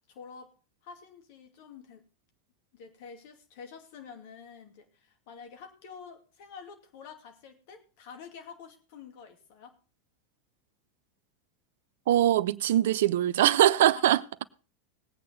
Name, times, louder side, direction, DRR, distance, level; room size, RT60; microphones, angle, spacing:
voice 1, 0.1-0.5 0.8-2.0 2.7-9.8 13.9-14.5, left 6 dB, 50° left, 2.5 m, -48 dB
voice 2, 12.1-14.2, right 12 dB, 60° right, 0.5 m, -22 dB
19.5 x 8.5 x 3.9 m
figure-of-eight pair, 85°, 0 cm